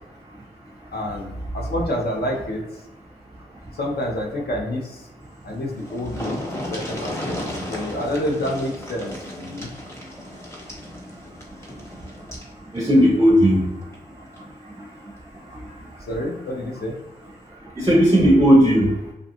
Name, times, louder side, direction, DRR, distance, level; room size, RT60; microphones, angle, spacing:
voice 1, 0.9-2.8 3.7-5.1 5.4-7.4 7.7-9.1 9.4-9.7 16.0-16.9, left 1 dB, 65° left, 0 dB, 0.6 m, -28 dB
sound 1, 5.4-5.5 5.7-12.5 13.8-14.0 14.4-14.5, left 1 dB, 15° left, 0.9 m, -34 dB
voice 2, 12.7-13.7 17.8-18.9, equal, 20° right, 0 dB, 0.5 m, -15 dB
2.5 x 2.3 x 2.7 m, 0.95 s
cardioid pair, 40°, 18 cm